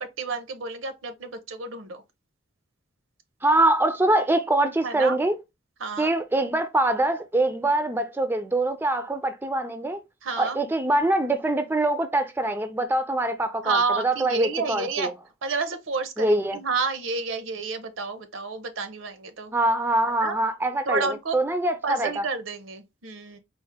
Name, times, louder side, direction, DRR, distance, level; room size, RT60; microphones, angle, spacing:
voice 1, 0.0-2.0 4.8-5.2 5.8-6.1 10.2-10.6 13.6-15.1 15.4-19.5 20.2-20.4 20.8-21.4 21.8-23.4, right 4 dB, 85° right, 0.7 m, -30 dB
voice 2, 3.4-5.4 6.0-10.0 10.4-15.1 16.2-16.6 19.5-22.2, right 2 dB, 10° right, 0.3 m, -24 dB
4.3 x 2.1 x 3.4 m
head